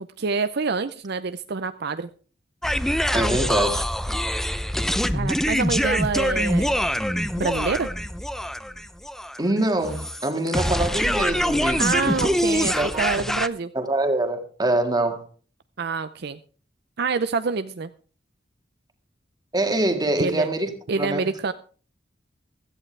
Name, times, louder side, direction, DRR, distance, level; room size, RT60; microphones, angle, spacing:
voice 1, 0.2-2.1 5.1-6.8 7.4-7.9 11.8-13.7 15.8-16.4 17.0-17.9 20.2-20.5 20.9-21.5, right 4 dB, 60° right, 11 dB, 0.6 m, -26 dB
sound 1, 2.6-13.5, equal, ahead, 0.5 m, -24 dB
voice 2, 3.1-3.9 9.4-12.4 12.7-13.0 13.7-15.2 19.5-20.7 21.0-21.3, right 1 dB, 20° right, 6 dB, 1.9 m, -24 dB
16.5 x 13.5 x 3.3 m, 0.39 s
head